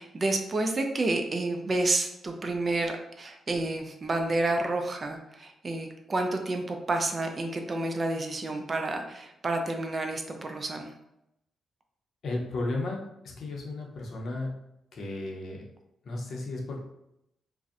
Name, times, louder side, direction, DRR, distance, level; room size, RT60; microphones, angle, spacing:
voice 1, 0.0-10.9, right 2 dB, 35° right, 4 dB, 0.3 m, -30 dB
voice 2, 12.2-14.5 14.9-15.7 16.0-16.8, left 2 dB, 65° left, 0 dB, 0.6 m, -34 dB
2.5 x 2.0 x 2.4 m, 0.82 s
cardioid pair, 95°, 0 cm